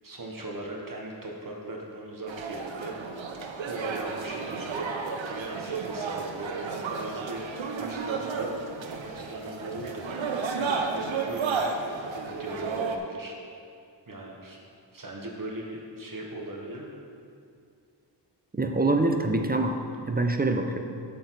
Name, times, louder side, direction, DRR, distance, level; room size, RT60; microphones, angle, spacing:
voice 1, 0.0-3.2 3.6-4.9 5.1-8.5 8.9-11.6 12.1-13.3 14.1-14.6 14.9-16.9, right 1 dB, 45° right, -1 dB, 1.1 m, -39 dB
sound 1, 2.3-13.0, right 5 dB, 90° right, 0.7 m, -32 dB
voice 2, 18.5-19.8 20.1-20.8, right 2 dB, 20° right, 5 dB, 0.6 m, -25 dB
8.2 x 6.8 x 4.1 m, 2.4 s
wide cardioid pair, 70°, 45 cm